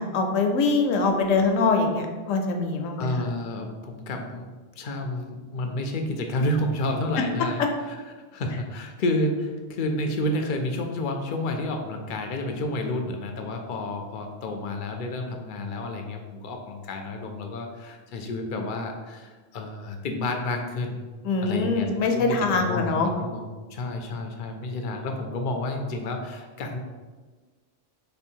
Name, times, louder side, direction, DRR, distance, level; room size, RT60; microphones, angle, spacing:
voice 1, 0.0-3.2 21.2-23.1, left 3 dB, 80° left, 4 dB, 1.0 m, -23 dB
voice 2, 3.0-4.5 4.8-8.0 8.3-21.0 21.4-21.9 22.1-26.8, left 1 dB, 60° left, 4 dB, 0.5 m, -30 dB
3.3 x 3.2 x 4.4 m, 1.4 s
omnidirectional pair, 1.3 m